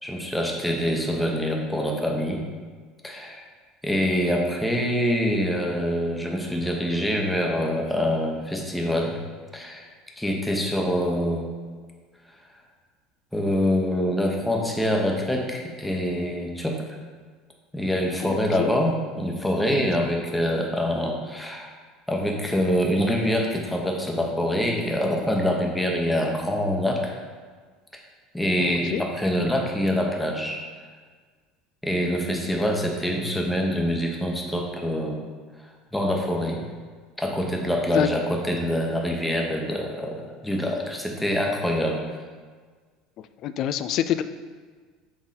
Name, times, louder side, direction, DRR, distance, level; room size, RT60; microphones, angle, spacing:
voice 1, 0.0-2.4 3.0-3.4 3.8-9.2 9.5-9.8 10.2-11.5 13.3-16.8 17.7-21.7 22.1-27.1 28.3-30.6 31.8-35.2 35.9-36.6 37.2-42.0, equal, 5° left, 0 dB, 1.0 m, -25 dB
voice 2, 18.2-18.8 28.6-29.0 37.9-38.1 43.2-44.2, left 11 dB, 45° left, 12 dB, 0.3 m, -27 dB
6.3 x 3.9 x 5.7 m, 1.5 s
cardioid pair, 145°, 0 cm